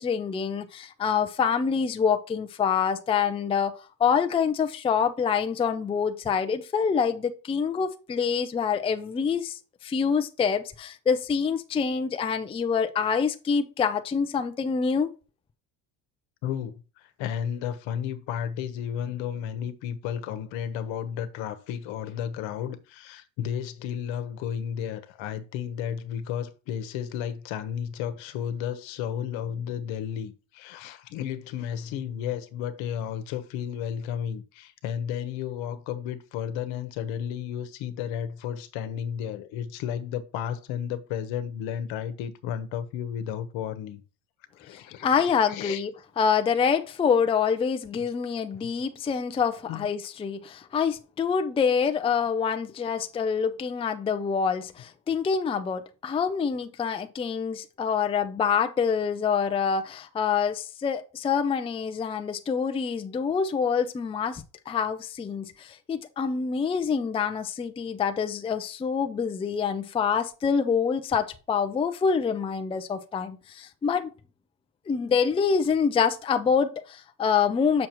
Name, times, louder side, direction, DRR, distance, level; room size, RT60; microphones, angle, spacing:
voice 1, 0.0-3.7 4.0-15.1 44.7-74.1 74.9-77.9, left 6 dB, 15° left, 0.4 m, -26 dB
voice 2, 16.4-44.0 44.5-45.8 49.7-49.9, left 9 dB, 75° left, 1.1 m, -33 dB
7.2 x 6.3 x 3.0 m
cardioid pair, 130°, 47 cm